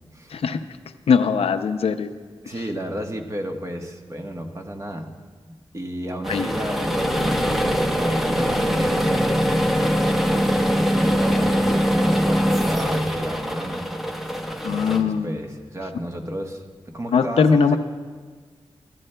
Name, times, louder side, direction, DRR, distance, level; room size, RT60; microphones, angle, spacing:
voice 1, 0.3-0.6 1.1-2.1 2.5-2.6 6.3-6.5 14.6-15.3 17.1-17.8, left 6 dB, 90° left, 9 dB, 0.5 m, -20 dB
voice 2, 2.4-5.1 5.4-13.9 14.7-17.8, equal, 30° right, 3 dB, 1.1 m, -32 dB
sound 1, 6.2-15.0, equal, ahead, 0.8 m, -22 dB
15.5 x 11.5 x 2.2 m, 1.5 s
wide cardioid pair, 70°, 10 cm